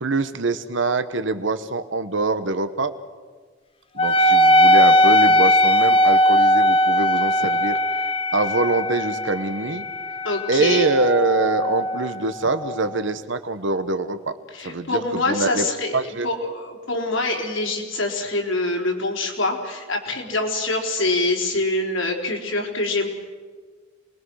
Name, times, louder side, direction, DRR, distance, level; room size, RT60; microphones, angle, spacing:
voice 1, 0.0-2.9 3.9-7.8 8.3-9.9 10.5-14.3 14.6-15.0 15.3-15.7 15.9-16.3, right 3 dB, 70° right, 10 dB, 1.1 m, -24 dB
Wind instrument woodwind instrument, 4.0-12.9, equal, 30° left, 0.9 m, -19 dB
voice 2, 10.2-10.9 14.5-23.1, left 2 dB, 90° left, 1 dB, 4.5 m, -25 dB
28.0 x 21.5 x 6.4 m, 1.5 s
head